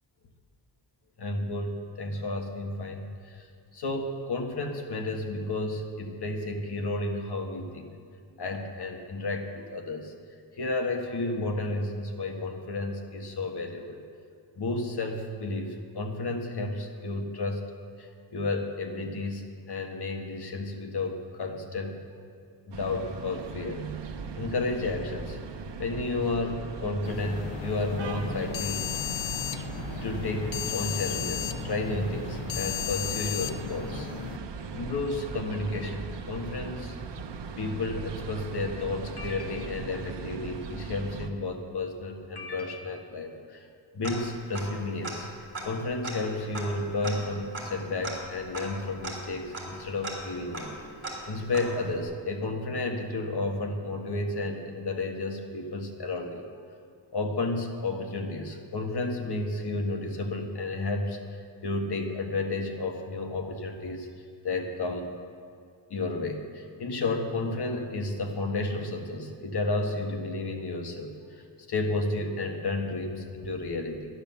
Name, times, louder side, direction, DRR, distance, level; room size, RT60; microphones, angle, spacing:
voice 1, 1.2-3.5 3.7-7.9 8.4-10.1 10.6-14.0 14.6-17.7 18.0-22.0 22.7-23.8 24.4-25.4 25.8-28.9 30.0-34.1 34.7-36.9 37.6-43.6 43.9-45.3 45.6-50.7 51.3-56.5 57.1-61.2 61.6-64.1 64.4-65.1 65.9-71.4 71.7-74.1, left 2 dB, 60° left, 3 dB, 1.6 m, -32 dB
sound 1, 22.7-41.3, right 5 dB, 70° right, 1.0 m, -39 dB
sound 2, 27.0-34.4, left 9 dB, 80° left, 0.7 m, -35 dB
Tick-tock, 44.0-44.8 45.0-45.1 45.5-52.0, right 2 dB, 25° right, 3.3 m, -39 dB
12.5 x 10.5 x 6.9 m, 2.4 s
wide cardioid pair, 115°, 44 cm